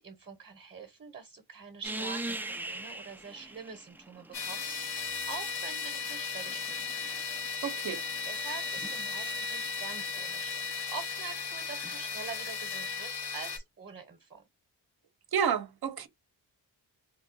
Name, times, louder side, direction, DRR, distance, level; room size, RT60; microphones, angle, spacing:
voice 1, 0.0-7.1 8.2-14.4, right 5 dB, 25° right, 0.9 m, -45 dB
sound 1, 1.8-4.9 6.0-9.5 11.8-11.9, right 2 dB, 5° right, 0.3 m, -42 dB
sound 2, 4.3-13.6, left 5 dB, 65° left, 0.9 m, -36 dB
voice 2, 7.6-8.0 15.3-16.1, right 8 dB, 55° right, 0.7 m, -30 dB
2.6 x 2.0 x 3.8 m
cardioid pair, 50°, 45 cm